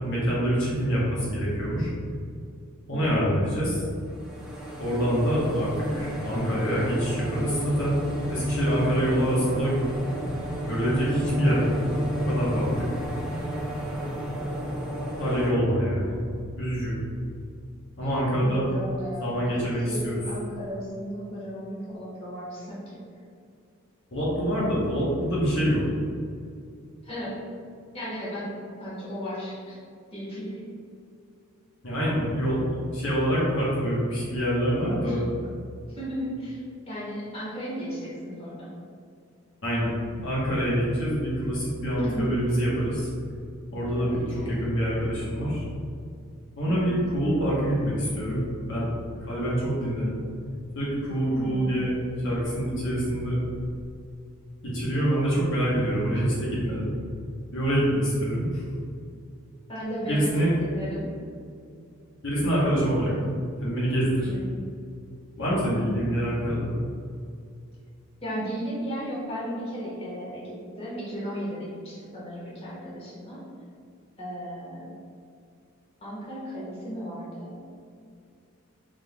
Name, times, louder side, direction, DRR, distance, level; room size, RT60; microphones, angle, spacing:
voice 1, 0.0-1.9 2.9-3.9 4.8-8.0 8.3-9.8 10.7-11.7 12.1-12.9 15.2-16.2 16.5-17.0 18.0-18.6 19.2-20.2 24.1-25.8 31.8-35.2 39.6-39.9 40.2-43.1 43.7-45.6 46.6-48.9 49.2-50.2 50.7-51.9 52.2-53.4 54.6-56.9 57.5-58.6 60.0-60.5 62.2-63.3 63.6-64.3 65.4-66.7, equal, 60° left, -7 dB, 1.0 m, -26 dB
voice 2, 2.9-3.2 18.0-19.5 19.9-23.0 27.0-27.3 27.9-28.5 28.8-29.8 30.1-30.6 34.8-35.2 35.9-38.7 41.9-42.2 43.9-44.6 51.3-51.7 56.2-56.3 59.7-60.3 60.6-61.0 64.3-64.6 68.2-73.4 74.2-74.9 76.0-77.5, equal, 30° left, -8 dB, 1.3 m, -35 dB
sound 1, 4.0-15.5, equal, 5° right, 0.6 m, -31 dB
5.1 x 3.7 x 2.2 m, 2.4 s
head